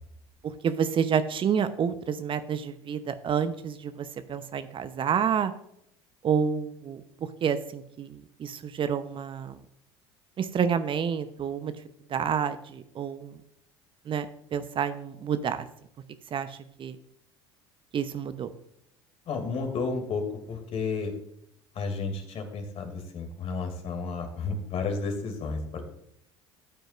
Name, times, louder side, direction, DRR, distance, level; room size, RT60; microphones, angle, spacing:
voice 1, 0.6-5.5 6.2-7.0 7.4-9.6 10.4-11.7 12.1-13.4 14.1-14.3 14.5-15.7 16.3-17.0 17.9-18.5, right 7 dB, 35° right, 11 dB, 0.8 m, -29 dB
voice 2, 19.3-20.2 20.5-21.1 21.7-25.8, left 4 dB, 45° left, 6 dB, 2.5 m, -32 dB
14.0 x 9.2 x 2.5 m, 0.74 s
figure-of-eight pair, 65°, 14 cm